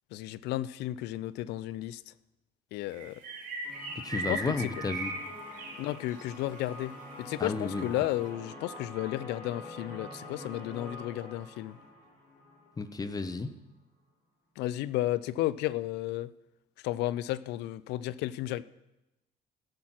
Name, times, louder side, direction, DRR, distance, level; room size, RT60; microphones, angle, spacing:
voice 1, 0.1-2.1 2.7-3.2 4.3-4.7 5.8-11.8 14.6-16.3 16.8-18.6, left 15 dB, 85° left, 0.4 m, -33 dB
sound 1, 2.9-6.3 6.6-6.7 7.1-7.2, right 2 dB, 50° right, 2.8 m, -38 dB
sound 2, 3.6-13.4, left 1 dB, 65° left, 3.2 m, -46 dB
voice 2, 4.0-5.1 7.4-7.9 12.8-13.5, left 3 dB, 20° left, 0.8 m, -33 dB
16.0 x 6.3 x 5.8 m
cardioid pair, 110°, 17 cm